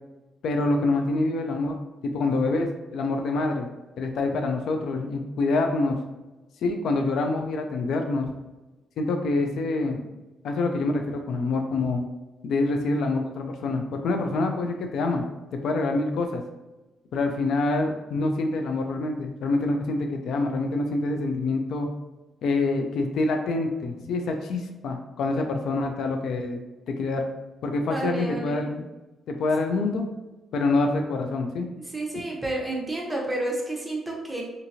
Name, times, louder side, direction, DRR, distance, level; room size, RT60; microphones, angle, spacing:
voice 1, 0.4-1.7 2.0-3.7 4.0-6.0 6.6-8.3 9.0-10.1 10.4-12.0 12.4-15.2 15.6-16.4 17.1-21.9 22.4-26.6 26.9-27.3 27.6-28.8 29.3-30.0 30.5-31.7, left 3 dB, 75° left, 4 dB, 0.3 m, -26 dB
voice 2, 27.9-28.7 31.9-34.4, right 2 dB, 10° right, -2 dB, 0.7 m, -30 dB
2.7 x 2.5 x 2.7 m, 1.1 s
cardioid pair, 100°, 0 cm